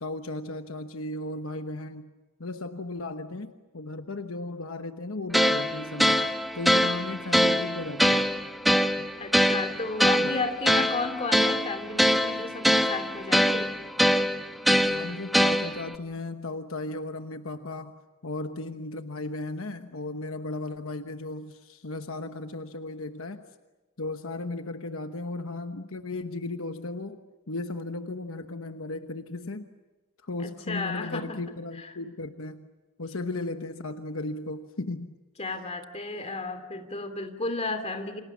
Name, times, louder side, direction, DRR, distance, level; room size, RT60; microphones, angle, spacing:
voice 1, 0.0-2.1 2.4-6.3 6.5-8.3 9.0-9.1 10.2-10.3 14.9-23.4 24.0-27.2 27.5-29.7 30.2-32.7 33.0-35.2, left 2 dB, 65° left, 7 dB, 1.1 m, -35 dB
sound 1, 5.3-16.0, equal, ahead, 1.1 m, -24 dB
voice 2, 9.2-13.8 30.4-31.4 31.8-31.9 35.4-38.2, left 3 dB, 30° left, 7 dB, 2.7 m, -33 dB
29.5 x 26.5 x 7.3 m, 1.2 s
head